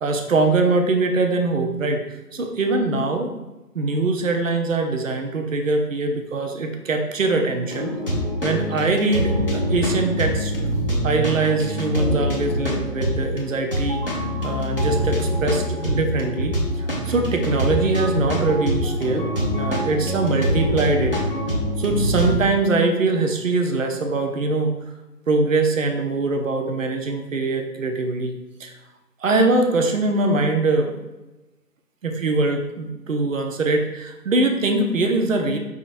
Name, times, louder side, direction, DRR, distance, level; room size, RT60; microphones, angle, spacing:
voice 1, 0.0-2.0 2.3-3.3 3.7-8.0 8.4-10.5 11.0-19.3 19.6-21.2 21.8-24.7 25.3-28.3 28.6-28.7 29.2-30.9 32.0-35.6, right 3 dB, 55° right, 4 dB, 0.6 m, -22 dB
sound 1, 7.6-22.4, equal, 35° left, 0.6 m, -24 dB
5.4 x 3.6 x 2.5 m, 1.1 s
hypercardioid pair, 175°, 49 cm